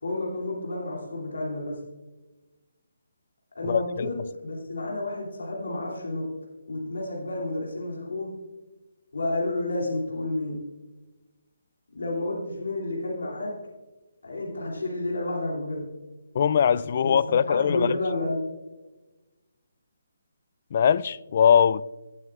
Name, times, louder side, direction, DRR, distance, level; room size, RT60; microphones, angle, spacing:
voice 1, 0.0-1.8 3.5-6.3 6.7-8.4 9.1-10.7 11.9-13.7 14.2-15.9 17.0-18.4, left 2 dB, 80° left, 2.7 m, -30 dB
voice 2, 3.6-4.1 16.3-17.9 20.7-21.8, left 7 dB, 45° left, 0.3 m, -21 dB
16.5 x 7.7 x 2.4 m
hypercardioid pair, 155°, 0 cm